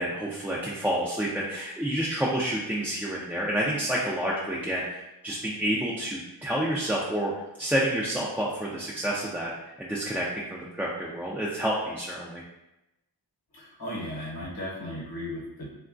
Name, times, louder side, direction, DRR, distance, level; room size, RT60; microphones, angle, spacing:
voice 1, 0.0-5.0 5.2-7.3 7.6-12.4, right 1 dB, 5° right, -6 dB, 0.3 m, -29 dB
voice 2, 13.5-15.7, left 1 dB, 60° left, -5 dB, 1.0 m, -36 dB
2.9 x 2.3 x 2.4 m, 0.93 s
wide cardioid pair, 65°, 41 cm